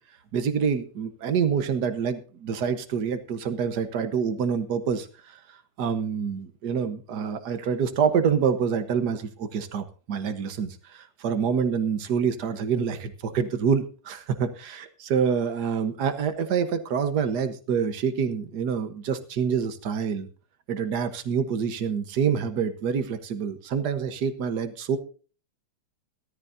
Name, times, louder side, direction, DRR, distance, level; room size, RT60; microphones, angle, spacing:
voice 1, 0.3-5.4 5.8-20.3 20.7-25.0, right 6 dB, 75° right, 9 dB, 0.9 m, -26 dB
19.0 x 13.5 x 2.7 m, 0.38 s
omnidirectional pair, 3.5 m